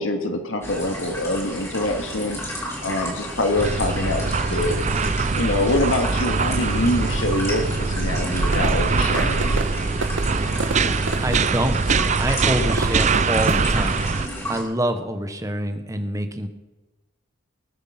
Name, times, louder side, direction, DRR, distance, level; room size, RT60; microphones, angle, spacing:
voice 1, 0.0-2.4 2.8-4.8 5.3-9.6, left 1 dB, 80° left, 5 dB, 1.9 m, -25 dB
sound 1, 0.6-14.6, equal, 15° left, 3.9 m, -32 dB
sound 2, 3.5-14.3, right 4 dB, 35° right, 0.5 m, -23 dB
sound 3, 8.4-13.6, right 3 dB, 70° right, 1.1 m, -31 dB
voice 2, 11.2-14.0 14.5-16.5, right 1 dB, 15° right, 8 dB, 1.1 m, -26 dB
20.0 x 8.2 x 5.9 m, 1.2 s
head